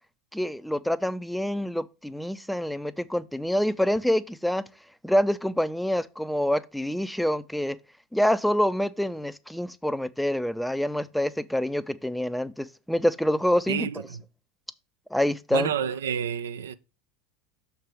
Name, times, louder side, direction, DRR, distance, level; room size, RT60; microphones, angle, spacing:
voice 1, 0.3-4.6 5.0-7.8 8.1-13.9 15.1-15.7, equal, ahead, 0.5 m, -26 dB
voice 2, 13.7-14.2 15.5-16.7, right 8 dB, 75° right, 0.4 m, -29 dB
6.6 x 4.6 x 4.9 m
figure-of-eight pair, 80°, 0 cm